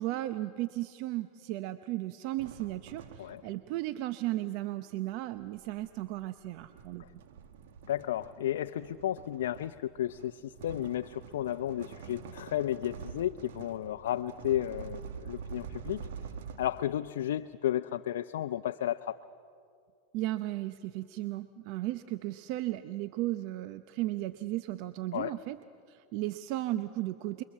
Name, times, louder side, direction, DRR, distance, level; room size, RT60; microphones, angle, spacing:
voice 1, 0.0-7.0 20.1-25.6 25.9-27.4, right 16 dB, 55° right, 12 dB, 0.7 m, -35 dB
sound 1, 2.4-3.7 4.9-17.1, right 6 dB, 75° right, 1.6 m, -46 dB
voice 2, 7.9-16.1 16.6-19.2 25.1-25.3, left 12 dB, 80° left, 9 dB, 0.6 m, -33 dB
28.0 x 23.0 x 7.4 m, 2.4 s
supercardioid pair, 115°, 0 cm